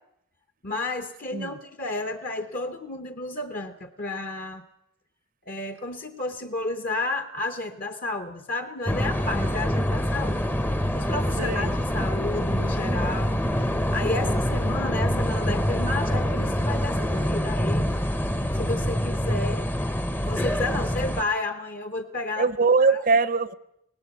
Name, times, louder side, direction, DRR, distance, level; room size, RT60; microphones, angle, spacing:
voice 1, 0.6-4.6 5.5-10.6 10.9-13.4 13.8-17.9 18.5-19.7 20.2-22.5 22.8-23.0, left 2 dB, 40° left, 0.9 m, -32 dB
sound 1, 8.9-21.2, equal, 10° left, 0.7 m, -25 dB
voice 2, 11.4-11.7 22.4-23.5, right 4 dB, 40° right, 0.7 m, -22 dB
19.5 x 18.5 x 8.2 m
head